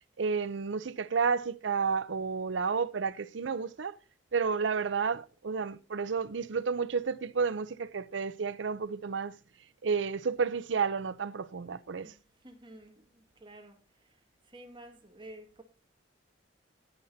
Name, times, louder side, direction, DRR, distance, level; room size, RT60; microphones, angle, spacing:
voice 1, 0.2-4.0 4.3-9.3 9.8-12.1, right 5 dB, 70° right, 0.5 m, -31 dB
voice 2, 12.0-13.8 14.5-15.6, right 1 dB, 25° right, 1.8 m, -51 dB
19.0 x 6.5 x 2.7 m
head